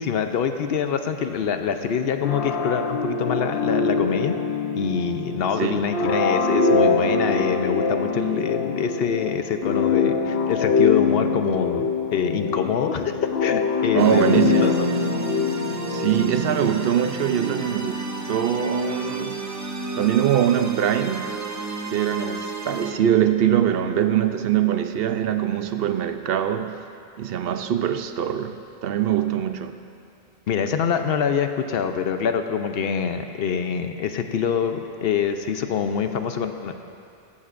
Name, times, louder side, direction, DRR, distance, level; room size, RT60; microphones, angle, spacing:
voice 1, 0.0-4.4 4.8-14.9 30.5-36.7, left 7 dB, 75° left, 7 dB, 0.9 m, -25 dB
sound 1, 2.2-16.8, left 5 dB, 90° left, 1.1 m, -24 dB
voice 2, 13.9-14.8 15.9-19.4 20.0-21.4 21.9-26.8 27.2-29.7, right 10 dB, 70° right, 8 dB, 0.8 m, -23 dB
sound 2, 14.0-22.9, right 2 dB, 25° right, 0.4 m, -31 dB
16.0 x 12.5 x 2.5 m, 2.6 s
omnidirectional pair, 1.0 m